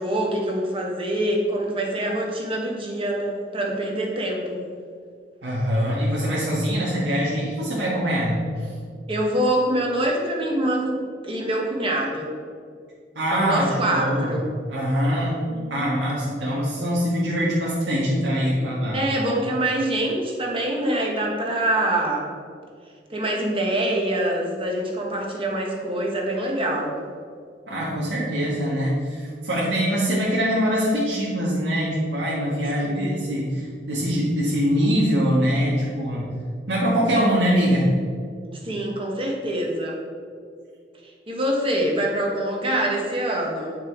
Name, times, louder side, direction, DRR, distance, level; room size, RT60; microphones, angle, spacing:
voice 1, 0.0-4.6 9.1-12.3 13.3-14.4 15.5-15.9 18.9-22.3 23.1-27.0 32.8-33.3 38.5-40.0 41.3-43.8, right 1 dB, 30° right, -1 dB, 1.6 m, -25 dB
voice 2, 5.4-8.7 13.1-14.3 14.7-15.4 15.7-19.0 27.7-36.3 36.7-37.9, equal, 90° right, -7 dB, 1.8 m, -23 dB
9.1 x 6.0 x 4.6 m, 2.2 s
head